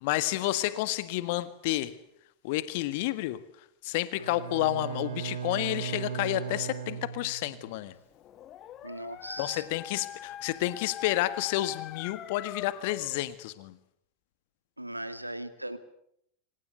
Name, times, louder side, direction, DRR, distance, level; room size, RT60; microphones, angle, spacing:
voice 1, 0.0-1.9 2.4-3.4 3.8-7.9 9.4-13.7, left 16 dB, 50° left, 14 dB, 1.6 m, -30 dB
Bowed string instrument, 4.2-7.7, right 7 dB, 65° right, 5.0 m, -37 dB
Dog, 8.1-13.2, left 11 dB, 30° left, 1.7 m, -43 dB
voice 2, 8.8-9.6 14.8-15.8, right 1 dB, 85° right, 11 dB, 2.3 m, -38 dB
26.5 x 26.5 x 8.1 m, 0.74 s
figure-of-eight pair, 90°, 0 cm